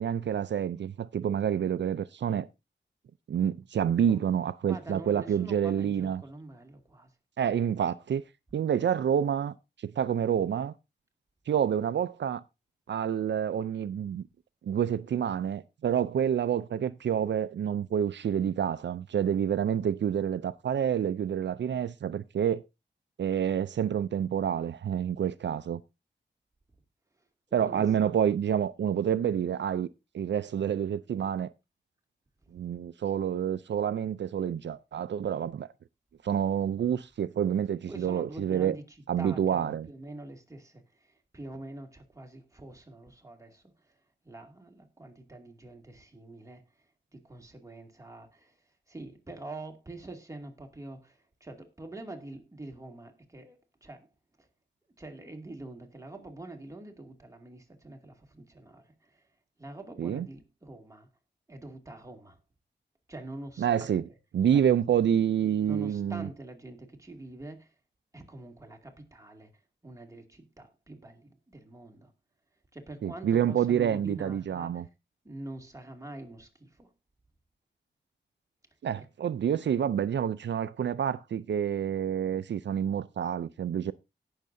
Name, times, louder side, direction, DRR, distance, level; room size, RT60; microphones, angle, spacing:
voice 1, 0.0-2.5 3.3-6.2 7.4-8.2 8.5-9.5 9.8-10.7 11.5-12.4 12.9-14.2 14.6-22.6 23.2-25.8 27.5-29.9 30.1-31.5 32.5-35.7 36.2-38.8 39.1-39.9 60.0-60.3 63.6-64.0 64.3-66.3 73.0-74.9 78.8-83.9, right 9 dB, 70° right, 0.4 m, -28 dB
voice 2, 4.7-7.2 27.1-27.3 27.6-27.9 32.4-32.8 37.9-54.1 54.4-54.5 55.0-61.1 61.5-62.4 63.1-63.9 64.5-64.7 65.7-67.8 68.1-72.1 72.7-74.9 75.2-76.9 79.0-79.1 79.5-79.6, right 2 dB, 15° right, 2.3 m, -45 dB
17.5 x 6.6 x 2.6 m
wide cardioid pair, 90°, 19 cm